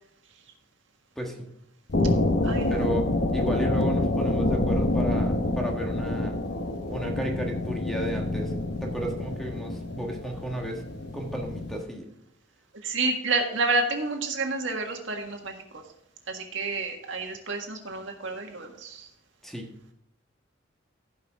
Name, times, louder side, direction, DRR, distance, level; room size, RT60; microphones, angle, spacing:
voice 1, 1.2-1.5 2.7-6.4 6.9-8.5 8.8-10.8 11.1-12.1 19.4-19.7, right 1 dB, ahead, 1 dB, 1.5 m, -33 dB
sound 1, 1.9-11.8, left 2 dB, 60° left, 0.9 m, -27 dB
voice 2, 2.4-2.9 12.8-15.8 16.3-19.1, right 3 dB, 75° right, 2 dB, 1.7 m, -29 dB
15.5 x 5.6 x 3.6 m, 0.77 s
head